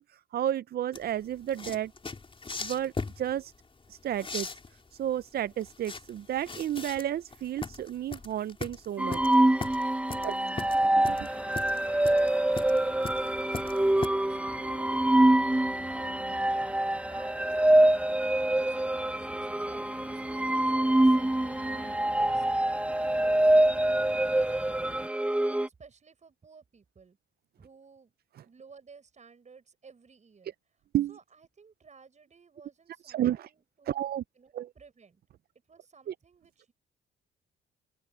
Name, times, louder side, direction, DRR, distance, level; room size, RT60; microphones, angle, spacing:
voice 1, 0.0-1.9 2.6-3.5 3.9-4.5 4.9-9.2 10.2-10.3 10.7-11.3 28.3-28.4 30.9-31.2 33.0-33.5 33.9-34.2 34.5-34.7 36.1-36.2, right 11 dB, 55° right, 0.5 m, -32 dB
sound 1, 0.9-14.1, left 4 dB, 25° left, 4.3 m, -39 dB
sound 2, 9.0-25.7, right 1 dB, 5° right, 0.6 m, -25 dB
voice 2, 9.9-10.4 11.1-11.8 12.3-18.0 18.5-27.2 27.6-28.1 28.4-30.5 31.1-34.1 34.4-35.2 35.7-36.7, right 5 dB, 35° right, 6.1 m, -55 dB
sound 3, 11.0-25.1, left 1 dB, 10° left, 1.4 m, -47 dB
open air
cardioid pair, 90°, 20 cm